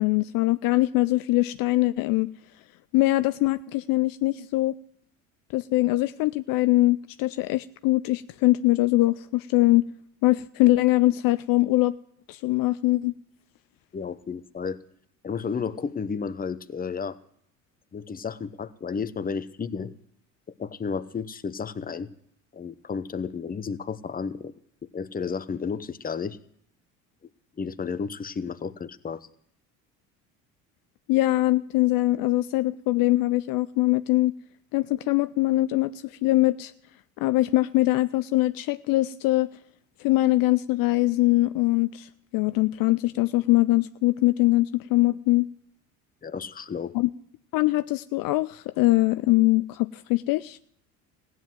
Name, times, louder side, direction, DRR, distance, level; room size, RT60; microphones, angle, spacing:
voice 1, 0.0-2.3 2.9-4.7 5.5-9.9 10.2-11.9 12.3-13.1 31.1-34.3 34.7-35.9 36.2-36.7 37.2-39.5 40.0-45.5 46.9-47.1 47.5-50.6, left 18 dB, 60° left, 13 dB, 0.5 m, -22 dB
voice 2, 13.9-14.8 15.2-17.2 17.9-19.9 20.6-22.1 22.5-24.5 24.8-26.4 27.6-29.3 46.2-46.9, left 5 dB, 20° left, 12 dB, 0.9 m, -32 dB
16.0 x 9.5 x 7.7 m, 0.71 s
hypercardioid pair, 70°, 39 cm